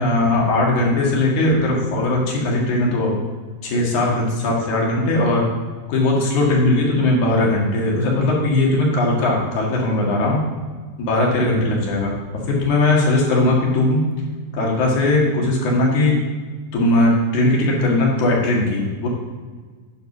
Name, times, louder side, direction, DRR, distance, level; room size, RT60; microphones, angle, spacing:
voice 1, 0.0-3.1 3.6-5.5 5.9-10.4 11.0-12.1 12.5-14.0 14.5-16.2 16.7-19.1, left 2 dB, 65° left, -3 dB, 3.2 m, -19 dB
9.1 x 5.7 x 6.0 m, 1.5 s
omnidirectional pair, 3.9 m